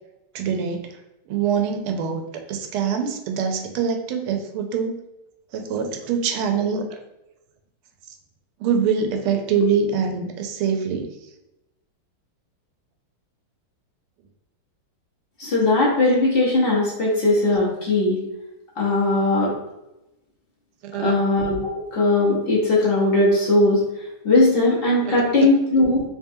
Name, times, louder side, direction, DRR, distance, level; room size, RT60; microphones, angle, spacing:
voice 1, 0.3-0.9 1.3-5.0 5.5-7.0 8.6-11.1 20.8-21.1 25.1-25.2, right 6 dB, 85° right, 5 dB, 1.5 m, -24 dB
voice 2, 15.4-18.2 18.8-19.5 21.0-23.8 24.2-26.0, left 2 dB, 85° left, -7 dB, 0.5 m, -19 dB
3.6 x 3.2 x 2.6 m, 0.93 s
omnidirectional pair, 2.3 m